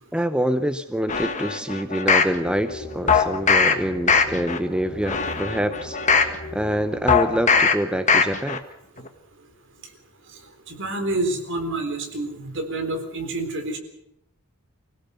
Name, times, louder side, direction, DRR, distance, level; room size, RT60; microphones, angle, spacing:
voice 1, 0.1-6.0 6.5-8.6, equal, 5° right, 10 dB, 0.7 m, -26 dB
sound 1, 1.1-2.3 3.1-3.7 4.1-4.6 5.0-6.3 7.1-7.7 8.1-8.6 9.0-9.1, left 5 dB, 35° left, 1.8 m, -20 dB
sound 2, 2.3-7.4, left 1 dB, 50° left, 3.7 m, -38 dB
voice 2, 10.7-13.8, right 2 dB, 55° right, 6 dB, 3.8 m, -28 dB
25.0 x 17.0 x 6.9 m, 0.79 s
head